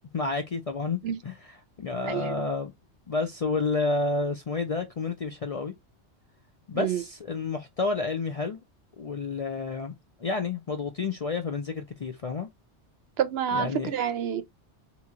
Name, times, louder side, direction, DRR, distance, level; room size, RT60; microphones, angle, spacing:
voice 1, 0.1-2.7 3.1-5.7 6.7-8.6 9.0-9.9 10.2-12.5 13.5-13.9, left 3 dB, 45° left, 0.4 m, -30 dB
voice 2, 13.2-14.4, right 8 dB, 70° right, 0.8 m, -28 dB
2.9 x 2.8 x 3.6 m
omnidirectional pair, 1.2 m